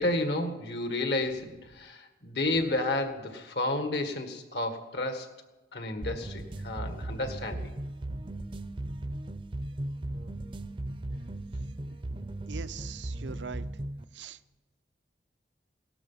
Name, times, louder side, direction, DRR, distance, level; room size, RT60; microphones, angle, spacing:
voice 1, 0.0-5.3 5.7-7.7, left 2 dB, 70° left, 6 dB, 1.8 m, -31 dB
sound 1, 6.0-14.0, right 1 dB, 30° right, 0.5 m, -37 dB
voice 2, 12.5-13.6 14.1-14.4, right 5 dB, 90° right, 12 dB, 0.6 m, -41 dB
17.5 x 13.0 x 5.7 m, 1.1 s
head